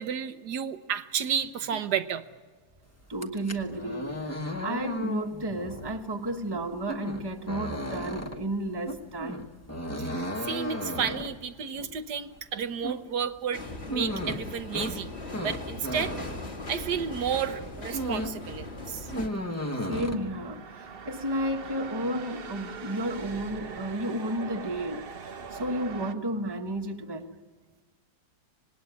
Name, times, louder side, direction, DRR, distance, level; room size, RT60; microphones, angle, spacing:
voice 1, 0.0-2.2 10.0-15.1 15.4-16.1 16.7-19.2, right 7 dB, 80° right, 1.5 m, -32 dB
sound 1, 3.1-17.2 17.5-18.5 18.7-20.2, equal, 10° left, 1.0 m, -35 dB
voice 2, 3.1-9.5 19.9-27.4, right 1 dB, 15° right, 1.3 m, -32 dB
sound 2, 13.5-19.3, left 2 dB, 40° left, 2.9 m, -39 dB
sound 3, 18.3-26.1, right 5 dB, 40° right, 1.0 m, -42 dB
25.5 x 19.5 x 9.4 m
omnidirectional pair, 1.7 m